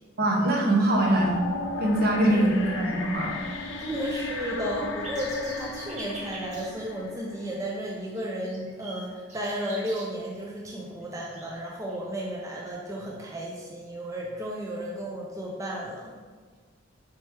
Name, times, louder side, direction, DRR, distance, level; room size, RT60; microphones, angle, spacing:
voice 1, 0.2-1.4 1.8-3.4, right 1 dB, 55° right, 0 dB, 0.7 m, -23 dB
sound 1, 0.9-8.0, left 3 dB, 75° left, 0.5 m, -35 dB
voice 2, 2.3-2.7 3.9-16.1, equal, 15° right, -3 dB, 0.4 m, -33 dB
sound 2, 5.0-6.6 7.5-7.6 8.0-10.0 11.0-11.1 11.3-12.1, right 2 dB, 40° right, 1.3 m, -43 dB
4.3 x 3.0 x 3.3 m, 1.5 s
head